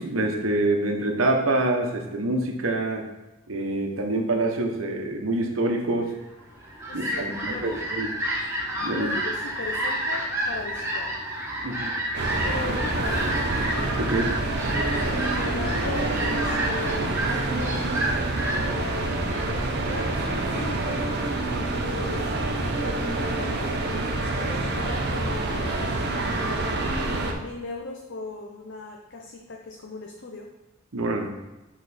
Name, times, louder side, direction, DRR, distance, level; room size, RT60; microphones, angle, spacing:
voice 1, 0.0-3.0 3.5-6.1 6.9-8.1 8.8-9.1 11.6-11.9 14.0-14.3 30.9-31.3, right 2 dB, 90° right, 3 dB, 0.9 m, -26 dB
Fowl, 6.4-20.3, right 1 dB, 15° right, 1.5 m, -30 dB
voice 2, 6.9-7.9 8.9-11.1 12.4-13.4 15.1-17.8 18.6-21.2 21.8-23.8 24.4-25.8 27.0-30.5, left 3 dB, 60° left, 0 dB, 0.7 m, -38 dB
sound 1, 12.1-27.3, right 2 dB, 55° right, 0.8 m, -27 dB
6.7 x 3.9 x 4.2 m, 1.0 s
head